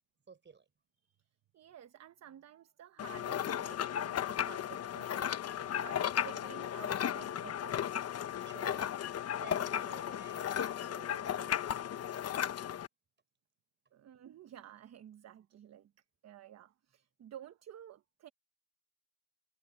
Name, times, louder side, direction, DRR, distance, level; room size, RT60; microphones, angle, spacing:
voice 1, 0.3-0.6 5.6-5.9 8.4-12.6, right 5 dB, 35° right, 6.7 m, -55 dB
voice 2, 1.5-8.0 13.9-15.9 16.2-18.3, right 11 dB, 60° right, 1.1 m, -53 dB
sound 1, 3.0-12.9, left 9 dB, 55° left, 1.1 m, -35 dB
cardioid pair, 90°, 30 cm